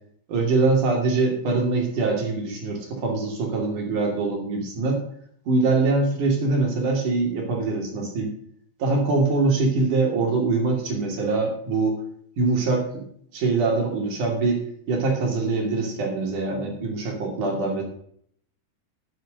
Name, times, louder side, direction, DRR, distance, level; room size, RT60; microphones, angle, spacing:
voice 1, 0.3-5.0 5.5-8.3 8.8-12.0 12.4-13.0 13.3-14.6 14.9-17.8, right 3 dB, 45° right, 1 dB, 3.6 m, -23 dB
9.8 x 9.2 x 6.6 m, 0.64 s
omnidirectional pair, 5.8 m